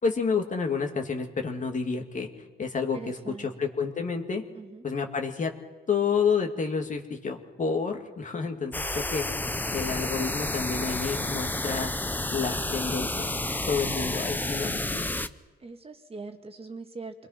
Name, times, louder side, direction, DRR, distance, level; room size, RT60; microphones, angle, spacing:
voice 1, 0.0-2.3 2.6-4.4 4.8-5.5 5.9-9.3 9.7-11.9 12.3-13.3 13.7-15.2, left 5 dB, 40° left, 4 dB, 2.6 m, -29 dB
voice 2, 2.9-3.5 4.5-4.9 15.6-17.3, right 3 dB, 30° right, 5 dB, 2.0 m, -42 dB
sound 1, 8.7-15.3, left 2 dB, 10° left, 0.8 m, -30 dB
26.5 x 21.0 x 6.0 m, 1.3 s
cardioid pair, 90°, 20 cm